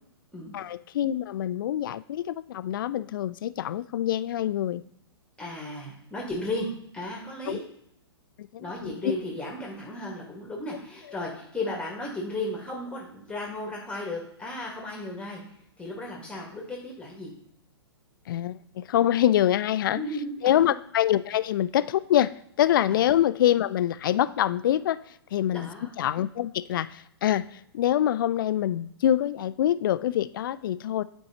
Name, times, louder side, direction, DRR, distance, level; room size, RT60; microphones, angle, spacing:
voice 1, 0.5-4.8 7.5-7.6 8.4-9.2 18.3-20.0 20.4-22.3 22.6-25.0 25.3-25.7 26.0-31.0, left 11 dB, 50° left, 15 dB, 0.4 m, -25 dB
voice 2, 5.4-6.7 6.9-7.6 8.6-17.3 19.9-20.7 22.9-23.0 25.5-25.9, left 1 dB, 10° left, -1 dB, 1.6 m, -35 dB
9.9 x 4.6 x 2.9 m, 0.76 s
figure-of-eight pair, 115°, 14 cm